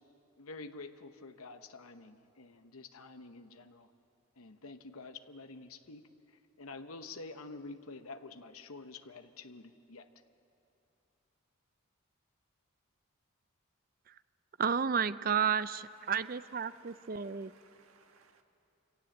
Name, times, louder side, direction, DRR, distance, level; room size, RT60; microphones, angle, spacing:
voice 1, 0.4-3.9 4.4-10.1, left 3 dB, 80° left, 8 dB, 1.0 m, -48 dB
voice 2, 14.6-17.5, right 7 dB, 40° right, 15 dB, 0.4 m, -32 dB
voice 3, 15.6-18.4, right 5 dB, 75° right, 5 dB, 1.7 m, -63 dB
26.0 x 17.5 x 7.8 m, 2.7 s
head